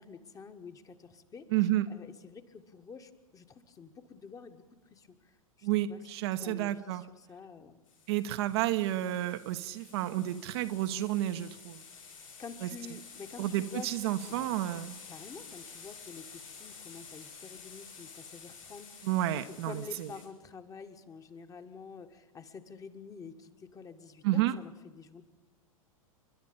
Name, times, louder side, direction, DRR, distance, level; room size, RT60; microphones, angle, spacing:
voice 1, 0.0-1.5 1.9-4.6 4.9-6.0 6.4-7.8 11.9-13.9 14.4-14.5 15.1-25.2, left 5 dB, 20° left, 8 dB, 1.6 m, -48 dB
voice 2, 1.5-1.9 5.6-7.0 8.1-11.8 12.6-12.7 13.4-15.0 19.0-20.1 24.2-24.6, right 14 dB, 45° right, 9 dB, 1.0 m, -31 dB
sound 1, 7.9-20.3, left 5 dB, 65° left, 7.5 m, -50 dB
30.0 x 12.0 x 8.8 m, 1.2 s
figure-of-eight pair, 95°, 18 cm